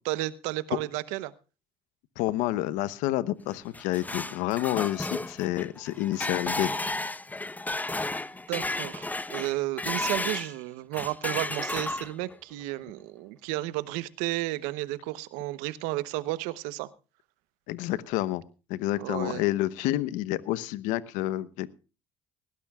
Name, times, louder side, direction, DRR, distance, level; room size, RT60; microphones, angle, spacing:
voice 1, 0.0-1.3 8.0-8.2 8.5-16.9 19.0-19.4, right 17 dB, 85° right, 0.9 m, -32 dB
voice 2, 2.2-6.7 17.7-18.4 18.7-21.7, left 15 dB, 80° left, 1.0 m, -29 dB
sound 1, 3.5-10.5 10.9-12.3, left 2 dB, 15° left, 0.9 m, -33 dB
19.5 x 16.5 x 2.4 m
supercardioid pair, 65°, 13 cm